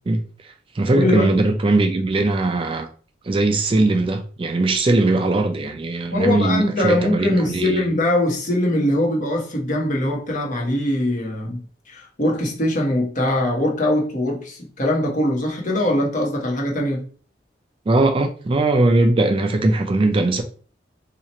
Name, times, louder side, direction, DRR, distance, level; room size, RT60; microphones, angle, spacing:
voice 1, 0.1-2.9 3.2-7.8 17.9-20.4, right 2 dB, 30° right, 0.3 m, -20 dB
voice 2, 0.9-1.3 6.0-17.1, left 1 dB, 40° left, 1.0 m, -22 dB
2.9 x 2.4 x 4.1 m
head